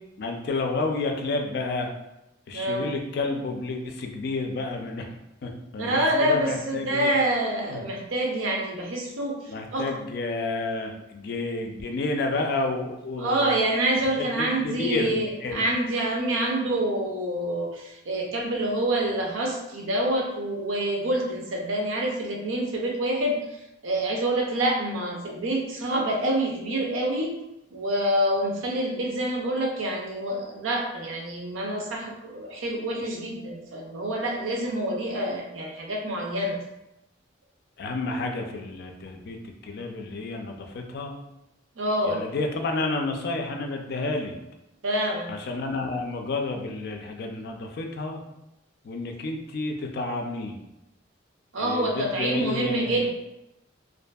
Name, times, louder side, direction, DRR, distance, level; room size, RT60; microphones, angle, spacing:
voice 1, 0.2-1.9 2.5-5.1 5.4-7.1 7.7-7.8 9.5-13.5 14.2-15.7 37.8-39.4 39.6-41.2 42.0-44.3 45.3-48.2 48.8-50.6 51.6-53.1, left 3 dB, 55° left, 3 dB, 0.3 m, -30 dB
voice 2, 2.5-2.8 5.8-9.9 13.2-23.4 23.8-27.3 27.7-36.6 41.8-42.2 44.8-45.3 51.5-53.1, right 1 dB, 90° right, 0 dB, 0.5 m, -27 dB
2.6 x 2.5 x 2.2 m, 0.90 s
head